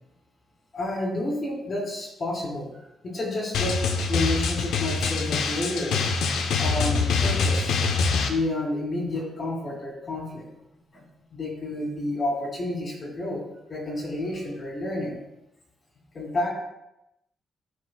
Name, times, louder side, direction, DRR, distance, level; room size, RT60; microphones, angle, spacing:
voice 1, 0.7-3.7 4.1-6.0 6.6-7.8 8.2-10.4 10.9-11.0 11.3-13.4 13.7-15.2 16.1-16.5, left 1 dB, 40° left, -2 dB, 2.1 m, -30 dB
Drum, 3.5-8.3, left 4 dB, 80° left, 0.8 m, -24 dB
12.5 x 4.9 x 2.3 m, 0.88 s
cardioid pair, 125°, 0 cm